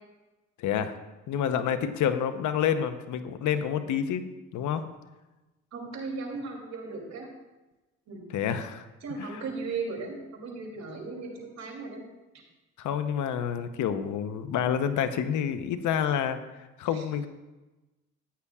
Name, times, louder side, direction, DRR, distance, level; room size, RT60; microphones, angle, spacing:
voice 1, 0.6-0.9 1.3-4.2 4.5-4.8 8.3-8.9 9.2-9.4 12.8-16.4 16.8-17.3, left 8 dB, 75° left, 10 dB, 0.8 m, -28 dB
voice 2, 5.7-7.3 8.1-8.2 9.0-12.0 16.9-17.0, right 4 dB, 60° right, 0 dB, 2.8 m, -36 dB
14.0 x 9.6 x 2.4 m, 1.1 s
cardioid pair, 90°, 30 cm